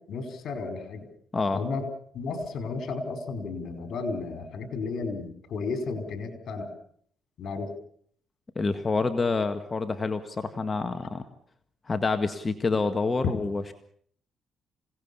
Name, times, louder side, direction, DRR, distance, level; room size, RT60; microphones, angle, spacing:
voice 1, 0.1-1.1 1.5-1.8 2.1-6.7 7.4-7.7 13.2-13.3, left 4 dB, 65° left, 7 dB, 4.9 m, -33 dB
voice 2, 8.6-11.2 11.9-13.7, left 3 dB, 30° left, 8 dB, 1.7 m, -27 dB
27.0 x 18.5 x 7.1 m, 0.62 s
cardioid pair, 90°, 0 cm